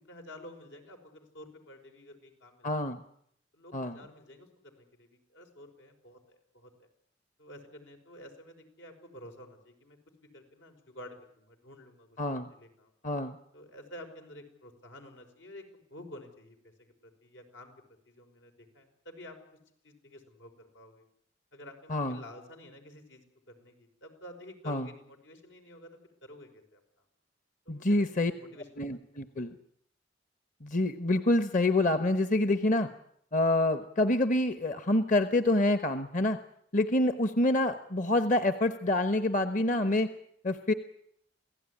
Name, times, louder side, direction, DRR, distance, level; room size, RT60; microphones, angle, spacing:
voice 1, 0.0-2.8 3.5-6.9 7.4-12.9 13.5-15.6 15.9-16.9 17.2-17.7 18.1-19.4 19.8-21.0 21.5-26.8 27.7-29.0, left 1 dB, 85° left, 4 dB, 5.6 m, -50 dB
voice 2, 2.6-3.0 3.7-4.0 12.2-12.5 13.0-13.4 21.9-22.2 24.7-24.9 27.7-28.3 28.8-29.6 30.6-32.9 33.3-36.4 36.7-40.1 40.4-40.7, left 1 dB, 45° left, 10 dB, 1.1 m, -27 dB
27.0 x 17.0 x 9.9 m, 0.72 s
head